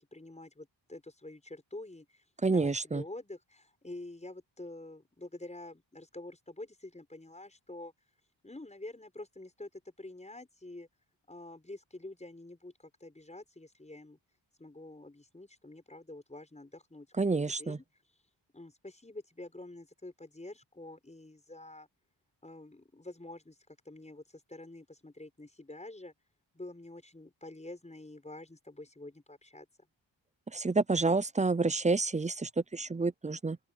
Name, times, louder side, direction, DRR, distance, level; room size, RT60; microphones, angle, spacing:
voice 1, 0.1-7.9 8.4-10.9 11.3-14.2 14.6-17.1 17.3-17.8 18.5-21.9 22.4-23.6 23.8-26.1 26.5-29.7, left 2 dB, 15° left, 6.1 m, -47 dB
voice 2, 2.4-3.0 17.2-17.8 30.5-33.6, right 3 dB, 15° right, 0.4 m, -29 dB
open air
wide cardioid pair, 155°, 47 cm